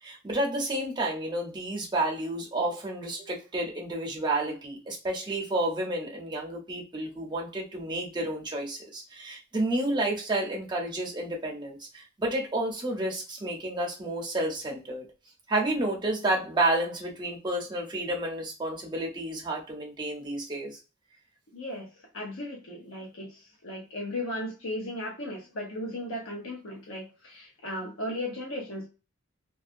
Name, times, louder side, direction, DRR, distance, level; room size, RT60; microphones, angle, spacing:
voice 1, 0.0-15.1 15.5-20.8, right 1 dB, 20° right, -1 dB, 0.7 m, -30 dB
voice 2, 21.5-21.9 22.1-28.9, left 1 dB, 80° left, -1 dB, 0.7 m, -36 dB
2.6 x 2.3 x 2.5 m, 0.32 s
head